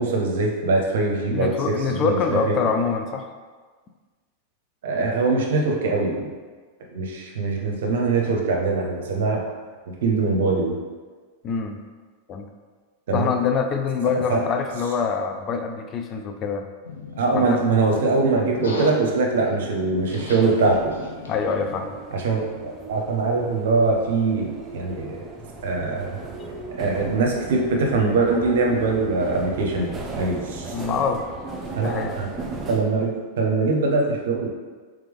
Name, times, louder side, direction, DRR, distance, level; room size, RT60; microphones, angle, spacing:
voice 1, 0.0-2.6 4.8-6.3 6.9-9.4 10.0-10.8 13.1-13.3 14.3-14.4 17.2-20.9 22.1-25.2 25.6-26.2 26.8-30.7 31.8-32.3 32.7-34.5, right 3 dB, 70° right, 0 dB, 0.7 m, -22 dB
voice 2, 1.3-3.3 11.4-11.8 12.3-12.5 13.1-16.7 17.3-17.6 21.3-21.9 26.4-26.6 30.7-31.2 31.8-32.2, left 5 dB, 35° left, 5 dB, 0.4 m, -25 dB
sound 1, 16.8-21.9, left 3 dB, 80° left, 0.6 m, -37 dB
sound 2, 20.0-32.8, right 3 dB, 20° right, 0.7 m, -37 dB
3.6 x 3.4 x 3.5 m, 1.4 s
hypercardioid pair, 95°, 0 cm